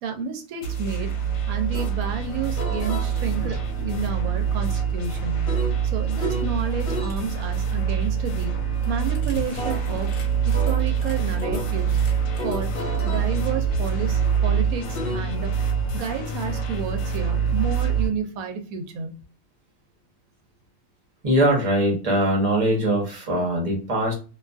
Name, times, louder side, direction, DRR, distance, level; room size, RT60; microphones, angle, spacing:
voice 1, 0.0-1.1 1.5-5.6 5.8-8.5 8.9-10.1 10.4-12.0 12.4-12.7 13.0-15.5 15.9-19.2, right 5 dB, 85° right, 5 dB, 1.0 m, -31 dB
sound 1, 0.6-18.1, right 7 dB, 75° left, 1.1 m, -25 dB
sound 2, 1.7-1.9 2.6-6.6 6.9-7.2 8.8-15.2, left 1 dB, 55° left, 0.6 m, -35 dB
voice 2, 21.2-24.1, right 1 dB, 30° right, -1 dB, 0.9 m, -22 dB
2.6 x 2.3 x 2.4 m, 0.35 s
omnidirectional pair, 1.4 m